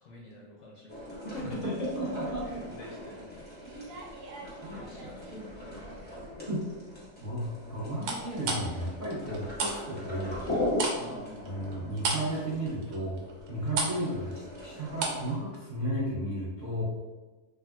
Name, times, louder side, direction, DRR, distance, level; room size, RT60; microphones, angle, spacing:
voice 1, 0.0-3.4 4.7-6.4 11.0-11.9, left 1 dB, 65° left, -3 dB, 0.8 m, -44 dB
sound 1, 0.9-15.3, left 1 dB, 15° left, 0.4 m, -40 dB
voice 2, 1.9-2.4 4.6-4.8 5.3-5.5 6.5-6.6 7.2-10.4 11.0-16.8, right 1 dB, 40° right, -9 dB, 0.7 m, -34 dB
sound 2, 3.6-5.3 5.8-6.3 8.0-9.8 10.0-15.3 15.5-15.7, right 3 dB, 80° right, 1.1 m, -34 dB
3.4 x 2.4 x 2.3 m, 1.2 s
omnidirectional pair, 1.7 m